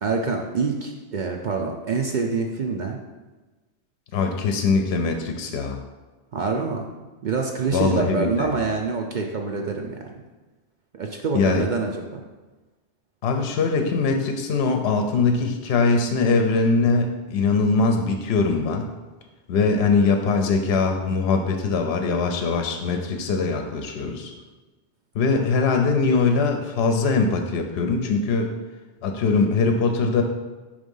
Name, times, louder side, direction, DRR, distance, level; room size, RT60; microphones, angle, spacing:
voice 1, 0.0-3.0 6.3-6.9 7.2-10.0 10.9-12.2, right 4 dB, 55° right, 2 dB, 0.6 m, -26 dB
voice 2, 4.1-5.8 7.7-8.5 11.3-11.6 13.2-18.9 19.5-24.3 25.1-28.5 29.0-30.2, left 4 dB, 70° left, 4 dB, 0.8 m, -22 dB
5.1 x 3.6 x 5.3 m, 1.2 s
omnidirectional pair, 1.1 m